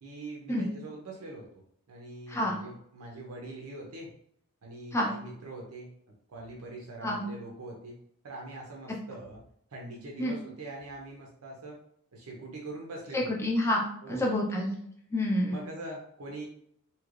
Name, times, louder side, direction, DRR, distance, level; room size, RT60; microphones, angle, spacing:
voice 1, 0.0-1.6 1.9-4.1 4.6-5.9 6.3-8.0 8.2-9.4 9.7-11.8 12.1-13.3 14.0-14.3 15.5-16.5, right 2 dB, 85° right, -1 dB, 0.6 m, -43 dB
voice 2, 13.1-13.8 14.1-14.7 15.1-15.6, left 1 dB, 10° left, -1 dB, 0.5 m, -28 dB
3.2 x 2.8 x 2.4 m, 0.68 s
head